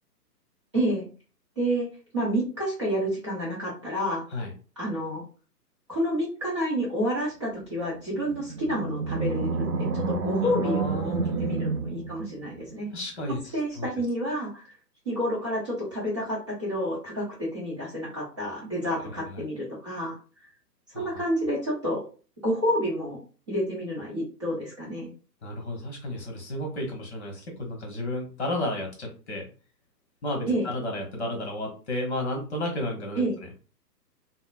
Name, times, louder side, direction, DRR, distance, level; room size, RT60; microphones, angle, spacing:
voice 1, 0.7-1.0 1.6-1.9 2.1-4.2 4.8-5.2 5.9-9.7 9.9-12.9 13.5-14.7 15.0-20.2 20.9-22.0 22.4-23.2 23.5-25.1 30.5-30.7 33.2-33.4, equal, 20° right, -8 dB, 0.6 m, -29 dB
Animal, 8.2-12.7, right 4 dB, 65° right, 0.7 m, -29 dB
voice 2, 10.6-11.5 12.9-13.9 19.3-19.4 20.9-21.1 25.4-29.5 30.2-33.2, left 1 dB, 40° left, 1 dB, 1.0 m, -32 dB
3.7 x 2.0 x 2.4 m, 0.36 s
figure-of-eight pair, 130°, 50 cm